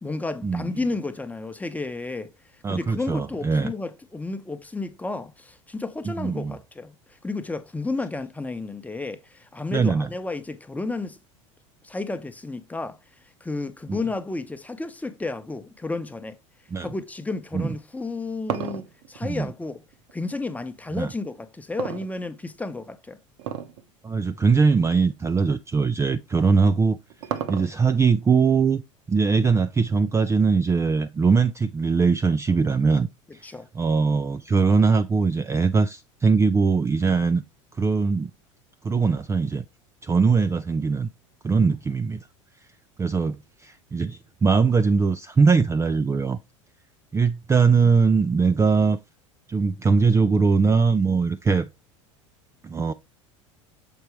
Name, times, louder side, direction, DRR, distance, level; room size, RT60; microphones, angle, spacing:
voice 1, 0.0-11.2 11.8-13.0 13.4-16.4 16.8-19.8 20.1-23.2 33.4-33.7, left 3 dB, 10° left, 0.9 m, -32 dB
voice 2, 2.6-3.7 6.1-6.6 9.7-10.1 13.9-14.0 16.7-16.9 17.5-17.7 19.2-19.5 20.9-21.1 24.0-27.0 27.5-28.8 29.1-33.1 33.3-33.5 33.7-37.4 37.7-38.3 38.8-39.6 40.0-41.1 41.4-42.2 43.0-46.4 47.1-49.0 49.5-51.7 52.6-52.9, right 5 dB, 15° right, 0.5 m, -21 dB
sound 1, 17.9-20.4 21.8-22.7 23.4-23.8 24.2-24.3 25.0-25.1 26.5-28.0, right 10 dB, 65° right, 1.0 m, -32 dB
7.0 x 4.4 x 3.2 m
hypercardioid pair, 85°, 16 cm